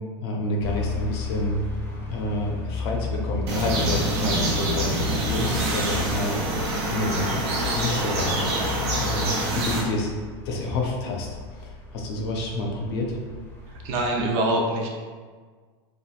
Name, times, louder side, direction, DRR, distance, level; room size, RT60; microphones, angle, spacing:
voice 1, 0.2-1.6 2.1-6.4 6.9-8.5 9.0-10.1 10.5-13.2, left 1 dB, 70° left, 0 dB, 0.6 m, -28 dB
sound 1, 0.6-14.3, left 5 dB, 15° left, 0.5 m, -35 dB
sound 2, 3.5-9.8, right 1 dB, 85° right, 0.7 m, -26 dB
voice 2, 13.8-14.9, right 1 dB, 50° right, 0 dB, 0.6 m, -24 dB
3.0 x 2.5 x 2.5 m, 1.5 s
supercardioid pair, 135°, 14 cm